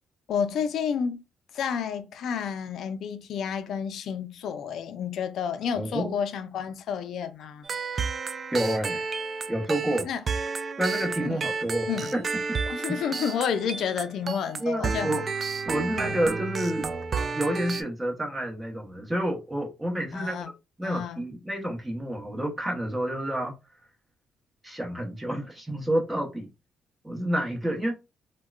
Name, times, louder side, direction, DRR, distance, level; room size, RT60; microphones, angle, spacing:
voice 1, 0.3-1.2 1.5-7.7 10.0-10.2 11.2-11.4 11.9-12.1 12.7-15.2 16.0-16.2 20.1-20.5 20.8-21.2, left 7 dB, 75° left, 0.4 m, -30 dB
voice 2, 5.8-6.1 8.5-9.1 9.5-10.1 10.8-12.2 14.6-15.2 15.7-16.9 17.3-20.4 20.8-23.5 24.6-26.5 27.0-27.9, right 1 dB, 10° right, 1.0 m, -29 dB
sound 1, 7.6-17.8, right 4 dB, 40° right, 0.3 m, -31 dB
3.5 x 2.2 x 2.3 m
cardioid pair, 90°, 0 cm